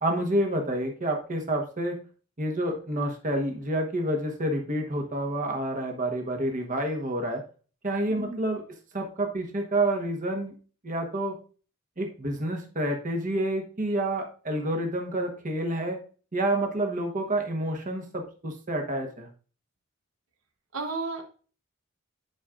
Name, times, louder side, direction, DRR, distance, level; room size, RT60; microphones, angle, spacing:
voice 1, 0.0-2.0 2.4-7.4 7.8-8.6 8.9-10.5 10.8-11.4 12.0-16.0 16.3-19.3, right 1 dB, 35° right, 3 dB, 1.2 m, -28 dB
voice 2, 8.1-8.4 20.7-21.2, right 3 dB, 70° right, 4 dB, 1.0 m, -33 dB
10.5 x 5.0 x 2.5 m, 0.38 s
head